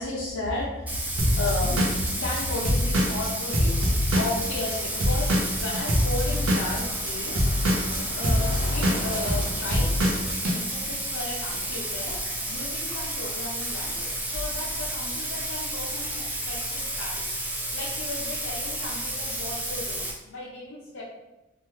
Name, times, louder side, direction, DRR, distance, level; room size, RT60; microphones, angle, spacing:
voice 1, 0.0-10.2 10.5-12.2 12.5-17.2 17.7-21.0, left 2 dB, 75° left, -5 dB, 0.6 m, -34 dB
Bathtub (filling or washing), 0.9-20.1, right 1 dB, 10° right, 0.4 m, -31 dB
Drum kit / Drum, 1.2-4.8 5.0-10.6, equal, 80° right, 0.7 m, -24 dB
Car passing by, 2.0-13.5, left 1 dB, 40° left, 0.7 m, -44 dB
3.0 x 2.3 x 3.1 m, 1.0 s
head